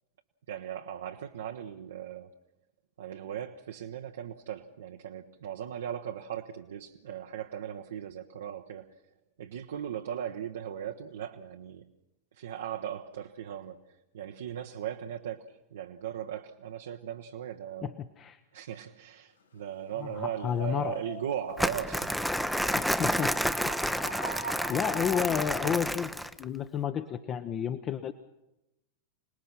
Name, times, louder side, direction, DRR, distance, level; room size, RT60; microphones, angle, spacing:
voice 1, 0.5-2.3 3.0-8.9 9.4-11.9 12.3-17.9 18.5-22.7, right 9 dB, 60° right, 0.9 m, -38 dB
voice 2, 17.8-18.4 20.0-21.0 22.6-23.3 23.6-24.0 24.7-26.1 26.4-28.1, left 8 dB, 30° left, 0.8 m, -31 dB
sound 1, 20.1-25.9, left 2 dB, 75° left, 2.0 m, -42 dB
Crumpling crinkling, 21.6-26.4, equal, ahead, 0.7 m, -30 dB
27.0 x 19.5 x 6.0 m
figure-of-eight pair, 90°, 0 cm